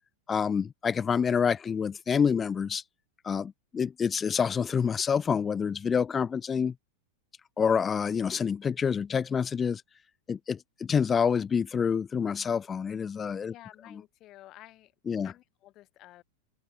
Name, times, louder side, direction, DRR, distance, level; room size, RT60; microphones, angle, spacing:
voice 1, 0.3-2.8 3.2-6.7 7.6-9.8 10.3-13.5 15.1-15.3, left 6 dB, 20° left, 0.4 m, -27 dB
voice 2, 13.5-14.9 15.2-16.2, left 16 dB, 35° left, 6.8 m, -52 dB
open air
figure-of-eight pair, 90°, 0 cm